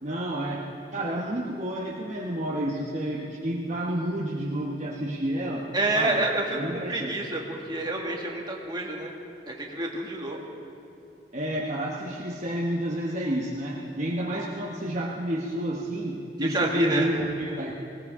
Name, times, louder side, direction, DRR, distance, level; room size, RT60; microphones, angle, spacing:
voice 1, 0.0-6.2 6.5-7.1 10.3-10.4 11.3-17.7, right 1 dB, 40° right, -3 dB, 1.1 m, -30 dB
voice 2, 5.7-9.1 9.5-10.4 16.4-17.1, right 2 dB, 25° right, -1 dB, 1.8 m, -28 dB
19.5 x 17.0 x 3.7 m, 2.7 s
head